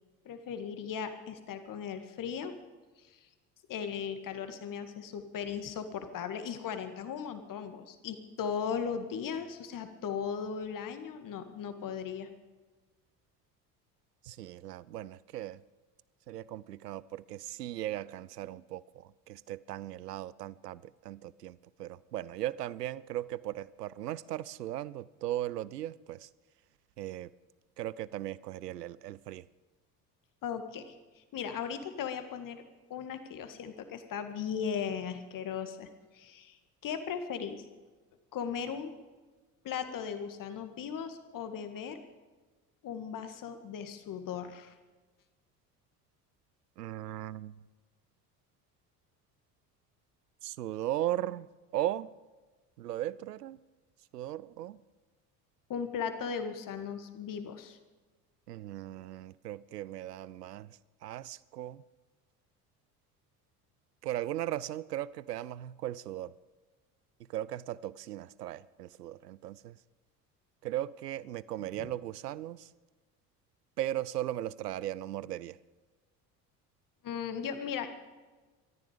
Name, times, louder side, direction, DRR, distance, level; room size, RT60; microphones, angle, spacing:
voice 1, 0.3-2.6 3.7-12.3 30.4-30.9 31.3-32.6 32.9-35.9 36.1-36.6 36.8-37.6 38.3-38.9 39.6-42.0 42.8-44.7 55.7-57.8 71.8-71.9 77.0-77.9, left 7 dB, 40° left, 1.9 m, -37 dB
voice 2, 14.2-15.6 16.3-26.3 27.0-27.3 27.8-29.4 46.8-47.6 50.4-51.5 51.7-52.1 52.8-53.6 54.1-54.8 58.5-61.8 64.0-66.3 67.3-69.8 70.6-72.7 73.8-75.6, right 13 dB, 80° right, 0.6 m, -37 dB
20.0 x 14.0 x 5.1 m
figure-of-eight pair, 60°, 48 cm